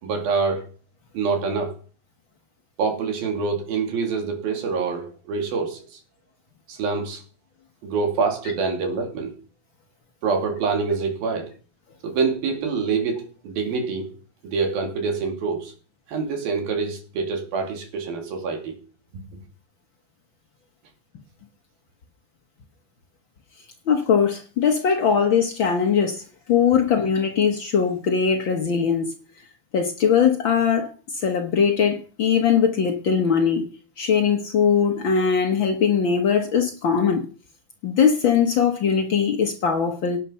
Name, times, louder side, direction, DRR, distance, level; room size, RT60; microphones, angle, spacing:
voice 1, 0.0-0.6 1.1-1.8 2.8-5.8 6.7-7.2 7.8-9.3 10.2-11.5 12.0-14.1 14.4-15.7 16.1-18.7, right 4 dB, 75° right, 4.6 m, -25 dB
voice 2, 23.9-26.2 26.5-29.1 29.7-33.7 34.0-37.2 37.8-40.2, left 7 dB, 80° left, 1.0 m, -20 dB
17.5 x 10.0 x 5.7 m
omnidirectional pair, 4.3 m